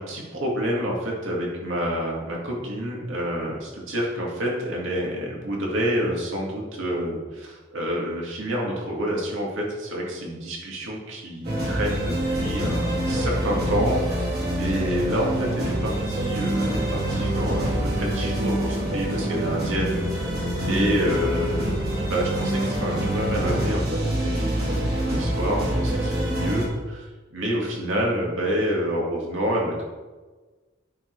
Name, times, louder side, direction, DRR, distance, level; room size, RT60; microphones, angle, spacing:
voice 1, 0.0-20.4 20.7-21.8 22.0-29.8, equal, 70° right, -2 dB, 2.2 m, -28 dB
sound 1, 11.4-26.7, right 1 dB, 50° right, 3.1 m, -26 dB
11.0 x 5.3 x 4.6 m, 1.3 s
head